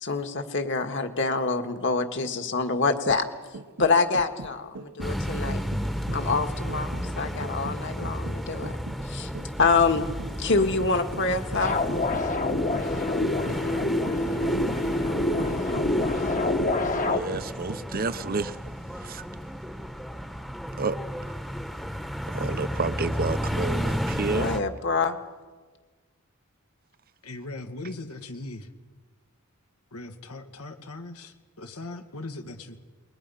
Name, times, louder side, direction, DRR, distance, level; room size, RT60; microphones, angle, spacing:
voice 1, 0.0-3.2 3.8-5.6 6.1-8.7 9.0-9.3 9.6-10.1 10.4-11.8 24.3-25.2, left 4 dB, 55° left, 6 dB, 1.8 m, -26 dB
sound 1, 2.8-18.7 19.0-19.1, right 2 dB, 80° right, 1.3 m, -42 dB
sound 2, 5.0-24.6, equal, ahead, 1.1 m, -33 dB
sound 3, 11.6-17.2, left 2 dB, 35° left, 1.2 m, -26 dB
voice 2, 17.1-18.6 19.0-19.2 20.8-21.0 22.3-24.5, right 4 dB, 40° right, 13 dB, 0.7 m, -30 dB
voice 3, 27.2-28.7 29.9-32.8, left 2 dB, 90° left, 5 dB, 2.1 m, -39 dB
29.0 x 21.5 x 5.7 m, 1.4 s
head